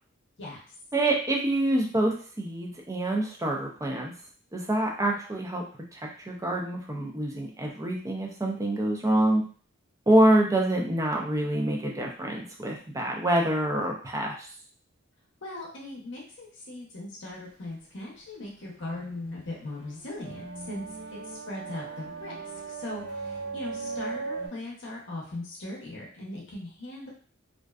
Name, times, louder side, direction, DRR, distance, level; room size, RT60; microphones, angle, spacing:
voice 1, 0.9-4.1 4.5-5.6 5.9-9.4 10.1-14.5, right 1 dB, 15° right, -1 dB, 0.4 m, -26 dB
voice 2, 15.4-20.8 21.1-22.4 22.6-27.1, left 2 dB, 60° left, -3 dB, 0.7 m, -39 dB
sound 1, 18.6-24.5, right 4 dB, 45° right, 1.4 m, -38 dB
2.5 x 2.2 x 2.3 m, 0.43 s
head